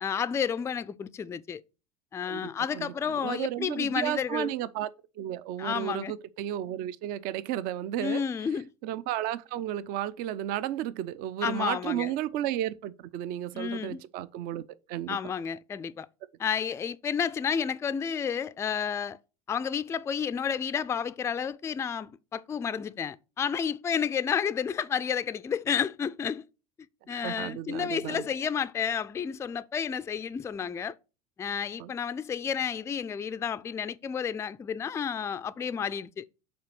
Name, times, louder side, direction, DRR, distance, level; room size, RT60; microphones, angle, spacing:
voice 1, 0.0-1.6 2.1-4.5 5.6-6.1 8.0-8.7 11.4-12.2 13.5-14.0 15.1-16.1 16.4-19.2 19.5-26.4 27.1-30.9 31.4-36.3, left 7 dB, 15° left, 0.3 m, -31 dB
voice 2, 3.2-4.9 5.2-8.2 8.8-14.6 14.9-15.3 27.1-28.3 31.8-31.9, right 12 dB, 55° right, 0.5 m, -33 dB
5.7 x 4.3 x 5.9 m
hypercardioid pair, 85°, 19 cm